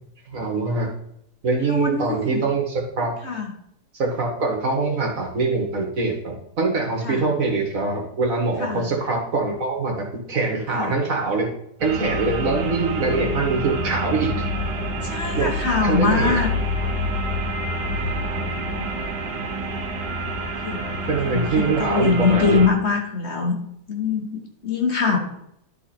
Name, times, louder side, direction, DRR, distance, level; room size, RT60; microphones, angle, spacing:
voice 1, 0.3-0.9 1.4-3.1 3.9-9.9 10.3-11.5 11.8-14.3 15.4-15.5 15.8-16.4 21.1-22.6, right 3 dB, 55° right, 1 dB, 2.0 m, -23 dB
voice 2, 1.6-2.4 3.2-3.5 7.0-7.3 8.6-8.8 10.7-10.9 15.0-16.5 18.7-19.0 20.6-23.6 23.9-25.2, left 4 dB, 45° left, 2 dB, 1.4 m, -23 dB
sound 1, 11.8-22.7, equal, 85° right, 1.7 m, -27 dB
11.5 x 4.1 x 4.4 m, 0.75 s
omnidirectional pair, 1.7 m